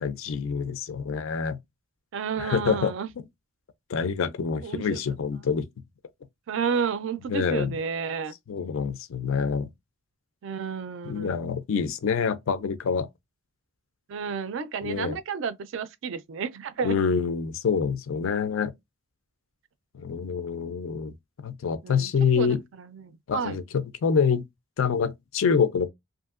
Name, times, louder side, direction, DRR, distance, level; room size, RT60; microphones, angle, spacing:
voice 1, 0.0-1.6 2.4-2.9 3.9-5.6 7.3-7.8 8.5-9.7 11.1-13.1 14.8-15.2 16.8-18.7 19.9-21.1 21.4-22.6 23.3-24.4 24.8-25.9, left 6 dB, 65° left, 0.4 m, -26 dB
voice 2, 2.1-3.1 4.6-5.0 6.5-8.3 10.4-11.4 14.1-17.0 21.8-22.1 22.4-23.6, right 6 dB, 60° right, 0.3 m, -31 dB
2.7 x 2.5 x 2.4 m
head